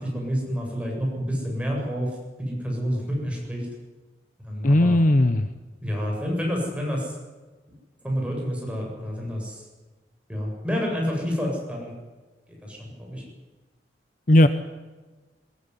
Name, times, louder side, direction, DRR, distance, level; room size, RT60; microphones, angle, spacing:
voice 1, 0.0-2.1 2.4-3.7 4.4-5.0 5.8-7.1 8.0-9.7 10.3-11.9 12.6-13.2, equal, 5° right, -2 dB, 7.9 m, -28 dB
voice 2, 4.6-5.5 14.3-14.5, left 1 dB, 50° left, 10 dB, 0.9 m, -17 dB
22.5 x 21.5 x 9.9 m, 1.3 s
head